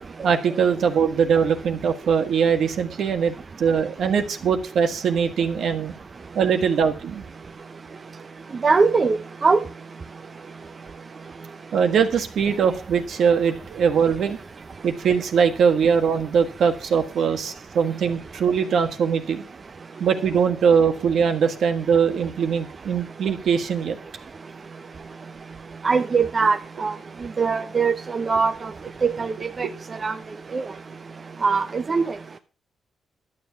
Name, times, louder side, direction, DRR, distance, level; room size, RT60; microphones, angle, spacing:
voice 1, 0.2-5.9 6.3-7.2 11.7-14.4 14.8-19.4 20.0-24.0 29.6-29.7, right 6 dB, 70° right, 6 dB, 1.6 m, -21 dB
voice 2, 8.6-9.2 9.4-9.6 25.8-26.9 27.4-28.5 29.0-29.7 30.0-30.1 30.5-30.6 31.4-32.0, right 4 dB, 40° right, 8 dB, 0.8 m, -21 dB
11.5 x 7.1 x 5.9 m, 0.37 s
cardioid pair, 90°, 0 cm